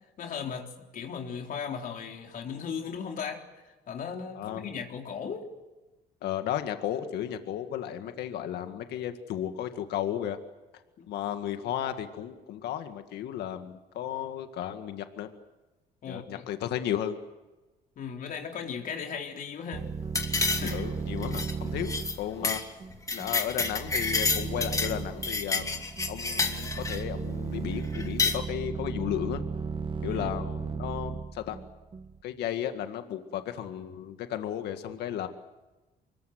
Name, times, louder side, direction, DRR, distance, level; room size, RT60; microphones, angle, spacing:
voice 1, 0.2-3.4 3.9-5.4 11.0-11.1 16.0-16.5 18.0-19.9 20.6-20.8 30.1-30.3, left 6 dB, 55° left, 2 dB, 3.9 m, -37 dB
voice 2, 4.3-4.7 6.2-10.4 11.1-15.3 16.1-17.2 20.7-22.6 23.1-29.4 30.0-31.6 32.2-35.3, left 10 dB, 75° left, 7 dB, 1.9 m, -34 dB
sound 1, 19.7-32.2, right 5 dB, 30° right, 1.4 m, -36 dB
sound 2, 20.1-20.9 21.2-21.5 21.8-22.1 22.4-22.6 22.9-24.9 25.2-27.0 27.9-28.4, left 4 dB, 20° left, 2.6 m, -29 dB
25.0 x 22.5 x 8.0 m, 1.1 s
cardioid pair, 110°, 17 cm